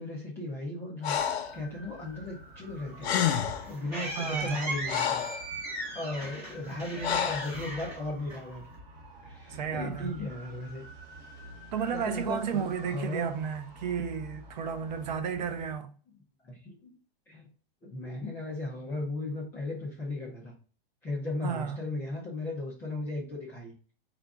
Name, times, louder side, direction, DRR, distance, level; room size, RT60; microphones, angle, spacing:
voice 1, 0.0-3.2 3.6-5.3 5.9-8.7 9.2-10.9 11.9-13.3 16.4-16.9 17.3-17.5 17.8-20.5 21.0-23.7, left 2 dB, 5° left, 0.4 m, -36 dB
Breathing, 1.0-1.6 2.7-2.8 3.0-3.7 4.4-5.4 7.0-7.5, left 9 dB, 85° left, 0.7 m, -29 dB
sound 1, 1.1-15.8, equal, 30° right, 1.4 m, -48 dB
sound 2, 2.9-8.8, right 1 dB, 10° right, 2.0 m, -38 dB
voice 2, 4.2-4.6 9.5-10.1 11.7-15.9 21.4-21.8, right 7 dB, 45° right, 0.6 m, -33 dB
4.8 x 2.5 x 3.5 m
supercardioid pair, 165°, 31 cm